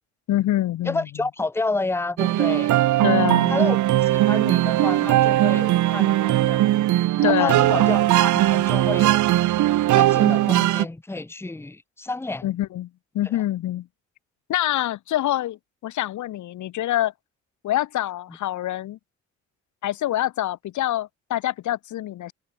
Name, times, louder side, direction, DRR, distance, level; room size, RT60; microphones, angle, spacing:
voice 1, 0.3-1.0 3.0-3.6 7.2-7.7 12.4-12.9 13.1-13.9 14.5-15.6 15.8-17.1 17.6-19.0 19.8-22.3, left 14 dB, 75° left, 1.1 m, -25 dB
voice 2, 0.8-2.7 3.5-3.8 4.0-6.6 7.2-9.2 9.9-12.5, left 2 dB, 10° left, 0.9 m, -29 dB
sound 1, 2.2-10.8, right 14 dB, 75° right, 1.0 m, -19 dB
cardioid pair, 90°, 30 cm